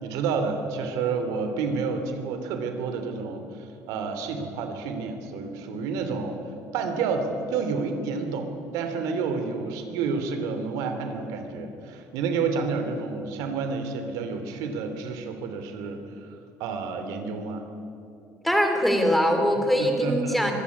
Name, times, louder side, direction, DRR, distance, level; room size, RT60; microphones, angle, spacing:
voice 1, 0.0-6.4 6.7-16.3 16.6-17.7 19.8-20.4, right 5 dB, 90° right, 7 dB, 2.9 m, -29 dB
voice 2, 18.4-20.5, equal, ahead, 4 dB, 3.0 m, -22 dB
24.0 x 15.5 x 9.6 m, 2.6 s
cardioid pair, 145°, 6 cm